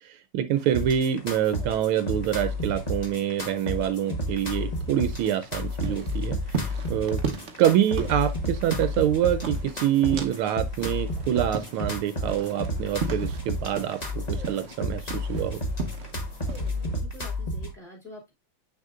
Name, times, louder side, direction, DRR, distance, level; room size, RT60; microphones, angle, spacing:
voice 1, 0.0-7.2 7.6-15.6, right 10 dB, 80° right, 1.5 m, -26 dB
sound 1, 0.5-17.0, left 4 dB, 55° left, 3.5 m, -52 dB
sound 2, 0.7-17.7, left 1 dB, 25° left, 1.1 m, -31 dB
sound 3, 5.1-10.5 10.8-14.1 14.4-16.1 16.5-16.7, right 5 dB, 50° right, 0.8 m, -35 dB
voice 2, 16.6-18.3, left 1 dB, ahead, 3.0 m, -46 dB
7.2 x 6.3 x 2.4 m
omnidirectional pair, 2.3 m